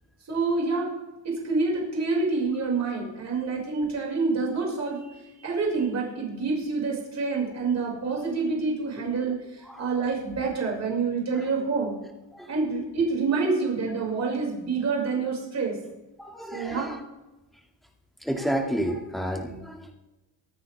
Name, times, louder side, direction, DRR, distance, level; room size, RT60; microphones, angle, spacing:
voice 1, 0.3-0.9 1.2-12.0 12.5-15.8 16.5-16.9, right 4 dB, 35° right, -3 dB, 5.9 m, -27 dB
voice 2, 16.2-17.0 18.2-19.9, right 1 dB, ahead, 2 dB, 2.2 m, -30 dB
24.5 x 9.6 x 3.5 m, 1.0 s
cardioid pair, 120°, 44 cm